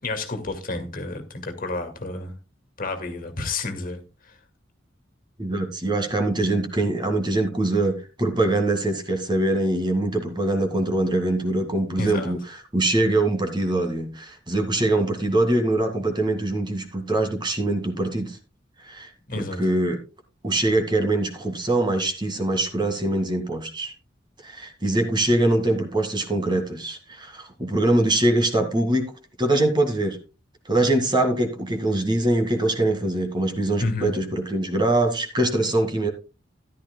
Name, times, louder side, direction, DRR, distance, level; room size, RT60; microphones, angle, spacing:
voice 1, 0.0-2.3 2.8-4.4 12.0-12.3 19.3-19.7 33.8-34.1, left 2 dB, 50° left, 2.0 m, -30 dB
voice 2, 5.4-12.4 12.7-18.4 18.8-19.1 19.4-20.0 20.4-23.9 24.4-29.1 29.4-30.2 30.7-36.1, right 2 dB, 25° right, 2.0 m, -23 dB
13.5 x 11.5 x 2.2 m
head